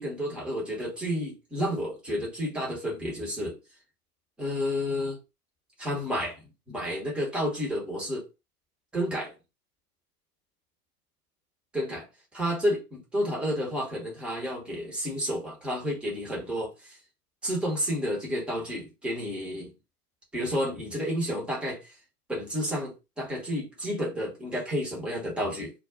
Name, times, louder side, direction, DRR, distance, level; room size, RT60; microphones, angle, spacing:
voice 1, 0.0-3.6 4.4-5.2 5.8-6.4 6.7-8.2 8.9-9.3 11.7-12.0 12.3-17.0 17.4-19.7 20.3-21.9 22.3-25.7, equal, ahead, 0.7 m, -31 dB
2.3 x 2.2 x 3.6 m
figure-of-eight pair, 110°, 46 cm